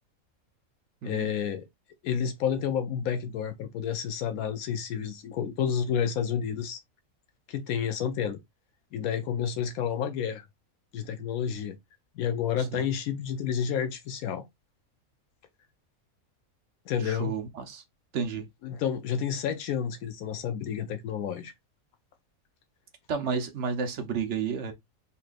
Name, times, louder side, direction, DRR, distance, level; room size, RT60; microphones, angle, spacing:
voice 1, 1.0-1.7 2.0-6.8 7.5-8.4 8.9-10.5 10.9-11.8 12.2-14.5 16.9-17.3 18.6-21.5, left 8 dB, 80° left, 1.0 m, -30 dB
voice 2, 17.0-17.8 18.1-18.4 23.1-24.7, right 6 dB, 60° right, 1.0 m, -31 dB
4.2 x 3.2 x 2.4 m
omnidirectional pair, 1.5 m